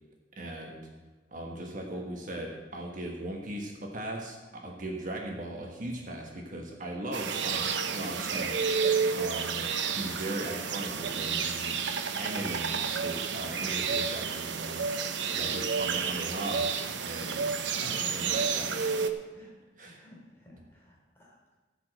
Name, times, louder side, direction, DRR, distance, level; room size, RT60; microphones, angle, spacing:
voice 1, 0.4-0.8 1.3-11.7 12.2-16.7 17.0-18.8 19.8-20.0, right 1 dB, 45° right, 1 dB, 1.3 m, -38 dB
sound 1, 7.1-19.1, right 6 dB, 80° right, 0.8 m, -30 dB
voice 2, 17.8-18.5 19.3-19.5 19.8-21.6, equal, 15° left, -3 dB, 3.2 m, -50 dB
15.0 x 5.0 x 7.7 m, 1.2 s
head